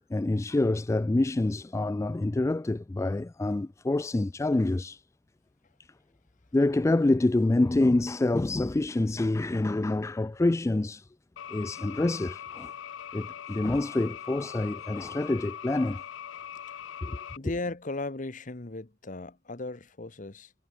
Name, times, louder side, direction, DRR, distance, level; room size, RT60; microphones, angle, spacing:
voice 1, 0.1-5.0 6.5-11.1 11.5-12.7 13.1-16.0 17.0-17.2, left 2 dB, 15° left, 0.3 m, -26 dB
sound 1, 11.4-17.4, left 9 dB, 85° left, 0.4 m, -41 dB
voice 2, 17.4-20.5, left 2 dB, 45° left, 1.1 m, -37 dB
head